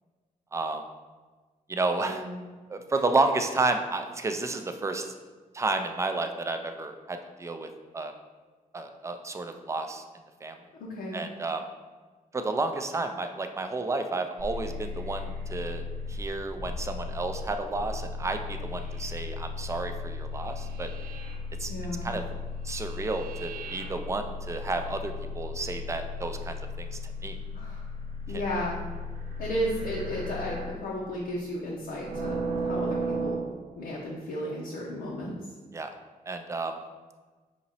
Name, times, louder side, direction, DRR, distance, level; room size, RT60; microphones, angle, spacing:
voice 1, 0.5-0.8 1.7-2.2 2.7-5.1 5.5-7.7 7.9-8.1 8.7-10.0 10.4-10.6 11.1-11.6 12.3-20.9 21.6-21.7 22.0-22.2 22.6-27.4 28.3-28.4 35.7-35.9 36.3-36.8, right 3 dB, 20° right, 6 dB, 0.4 m, -31 dB
voice 2, 2.0-2.4 10.8-11.2 21.6-22.1 27.5-27.9 28.3-28.8 29.4-33.4 33.8-35.3, equal, 90° left, -4 dB, 0.6 m, -34 dB
sound 1, 14.4-30.9 31.8-33.5, left 1 dB, 70° right, 0.7 m, -35 dB
5.0 x 2.9 x 2.7 m, 1.4 s
cardioid pair, 95°, 15 cm